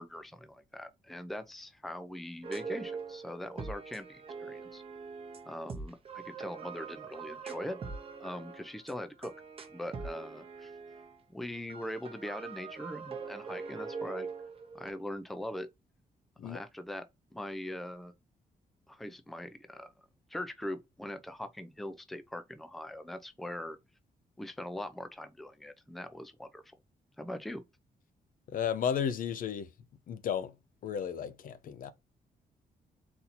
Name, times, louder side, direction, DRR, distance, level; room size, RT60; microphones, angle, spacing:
voice 1, 0.0-4.8 5.5-7.8 8.2-9.3 9.7-10.7 11.3-14.3 14.7-15.7 16.4-17.0 17.3-18.1 18.9-19.9 20.3-23.8 24.4-26.7 27.2-27.6, left 1 dB, ahead, 0.5 m, -41 dB
sound 1, 2.4-11.2 11.7-14.9, right 5 dB, 35° right, 0.8 m, -43 dB
voice 2, 28.5-29.7 30.1-30.5 30.8-31.9, left 8 dB, 60° left, 0.5 m, -33 dB
4.2 x 2.7 x 4.2 m
cardioid pair, 150°, 16 cm